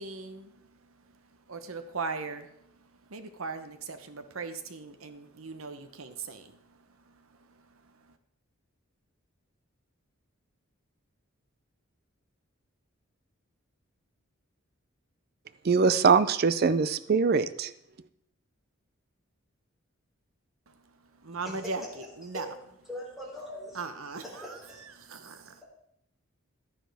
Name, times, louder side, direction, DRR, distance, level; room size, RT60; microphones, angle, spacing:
voice 1, 0.0-8.2 20.7-22.5 23.7-25.6, right 4 dB, 80° right, 9 dB, 0.9 m, -40 dB
voice 2, 15.6-17.7, right 5 dB, 45° right, 14 dB, 0.4 m, -23 dB
voice 3, 22.9-23.8 24.2-24.9, left 1 dB, ahead, -4 dB, 3.1 m, -42 dB
11.5 x 10.5 x 3.5 m, 0.75 s
head